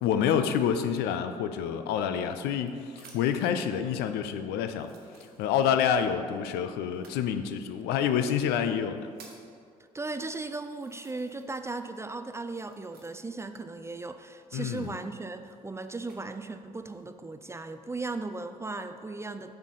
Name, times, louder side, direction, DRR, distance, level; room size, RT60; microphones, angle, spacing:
voice 1, 0.0-4.9 5.4-9.1 14.5-15.0, left 8 dB, 60° left, 9 dB, 0.5 m, -28 dB
sound 1, 1.8-3.5 4.2-4.3 4.8-5.8 6.9-7.2 8.1-8.2 8.7-9.5 10.2-10.3 10.7-11.6 11.9-13.4 14.6-16.2 16.9-17.3, right 4 dB, 55° right, 1.1 m, -56 dB
voice 2, 9.9-19.5, right 3 dB, 15° right, 9 dB, 0.4 m, -37 dB
6.6 x 5.9 x 4.1 m, 2.2 s
figure-of-eight pair, 50°, 19 cm